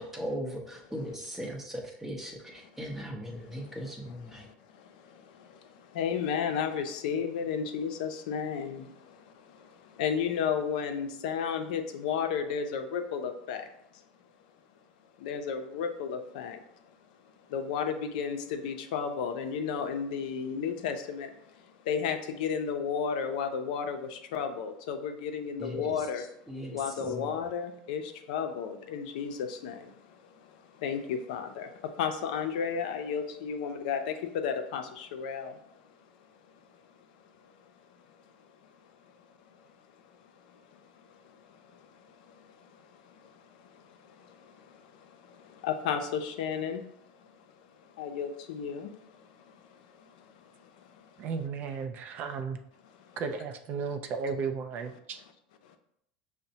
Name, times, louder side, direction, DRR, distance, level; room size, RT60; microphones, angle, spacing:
voice 1, 0.0-4.5 25.6-26.1 26.5-27.5, equal, 5° right, 0 dB, 0.7 m, -38 dB
voice 2, 3.4-3.8 4.3-14.0 15.2-16.9 17.5-26.3 26.7-36.0 36.5-38.2 38.6-51.3 53.0-53.2 55.6-55.8, left 7 dB, 75° left, 6 dB, 0.5 m, -35 dB
voice 3, 51.2-52.6 53.2-55.2, right 5 dB, 45° right, 7 dB, 0.4 m, -34 dB
5.8 x 2.1 x 2.7 m, 0.75 s
supercardioid pair, 125°, 4 cm